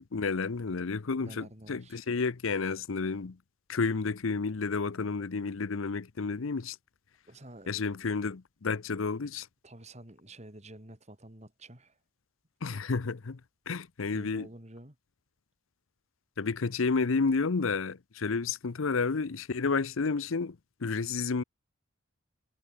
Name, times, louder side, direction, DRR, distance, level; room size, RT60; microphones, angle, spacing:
voice 1, 0.0-3.4 3.7-6.8 7.7-9.5 12.6-13.4 13.7-14.5 16.4-20.6 20.8-21.4, left 4 dB, 75° left, 0.7 m, -31 dB
voice 2, 1.2-2.1 7.3-7.7 9.6-12.0 14.1-15.0, right 1 dB, 35° right, 3.9 m, -49 dB
head